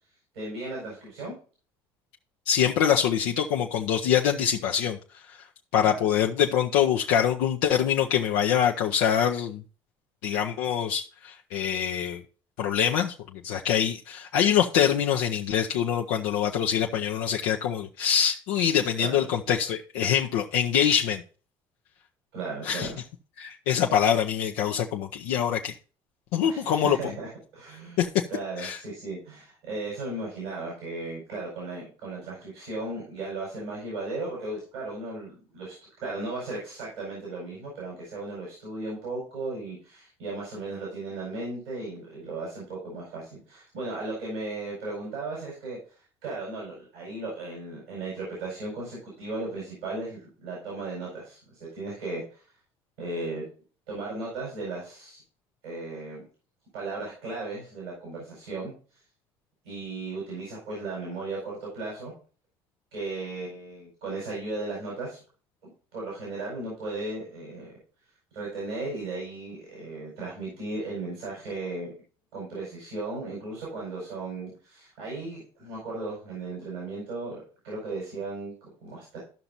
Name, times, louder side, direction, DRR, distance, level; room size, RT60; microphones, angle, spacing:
voice 1, 0.3-1.3 5.8-6.0 19.0-19.3 22.3-23.0 26.5-28.0 28.3-35.8 36.0-45.8 46.2-52.4 53.0-53.5 53.9-55.2 55.6-56.2 56.7-58.7 59.6-62.1 62.9-65.2 65.6-67.7 68.3-71.9 72.3-77.4 77.6-79.2, right 2 dB, 90° right, -5 dB, 4.7 m, -36 dB
voice 2, 2.5-5.0 5.3-5.4 5.7-9.6 10.2-12.2 12.6-13.1 13.4-21.2 22.6-22.9 23.4-25.8 26.3-27.0 28.0-28.2 28.6-28.8, left 9 dB, 75° left, 2 dB, 0.6 m, -24 dB
13.5 x 5.9 x 2.7 m, 0.38 s
hypercardioid pair, 60°, 13 cm